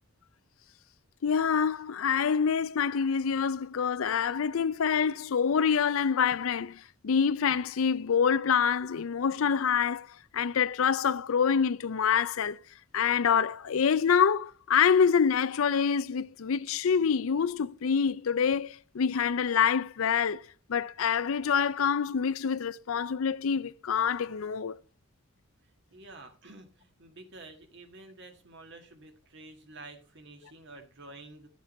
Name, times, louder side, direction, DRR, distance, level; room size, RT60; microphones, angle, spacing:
voice 1, 1.2-10.1 10.3-12.6 12.9-20.4 20.7-24.8, left 7 dB, 70° left, 0.5 m, -26 dB
voice 2, 25.9-31.5, right 2 dB, 55° right, 1.8 m, -49 dB
12.0 x 7.2 x 4.2 m
head